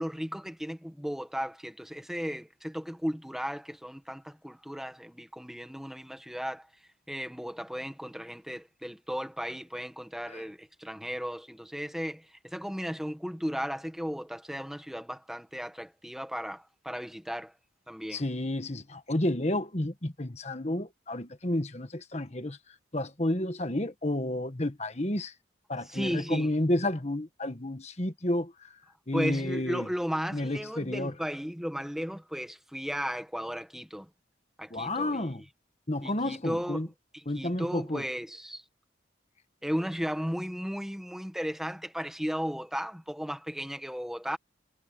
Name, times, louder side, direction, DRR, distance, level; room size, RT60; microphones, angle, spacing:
voice 1, 0.0-6.7 7.1-17.5 17.9-18.2 25.8-26.5 29.1-34.1 34.6-35.3 36.0-36.8 37.1-38.6 39.6-44.4, equal, ahead, 1.3 m, -35 dB
voice 2, 18.1-22.6 22.9-25.3 25.7-28.7 29.1-29.9 30.3-31.1 34.7-35.4 35.9-36.9 37.3-38.0, left 1 dB, 35° left, 1.5 m, -31 dB
head